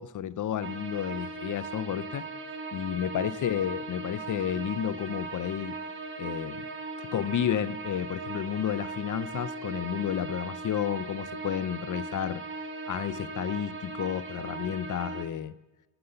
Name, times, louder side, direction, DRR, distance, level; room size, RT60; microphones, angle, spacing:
voice 1, 0.0-2.2 2.7-5.8 6.2-6.6 7.0-12.4 12.9-15.5, left 10 dB, 45° left, 16 dB, 0.4 m, -31 dB
sound 1, 0.6-15.2, right 3 dB, 25° right, 1.3 m, -38 dB
9.6 x 6.8 x 6.7 m, 1.1 s
wide cardioid pair, 135°, 48 cm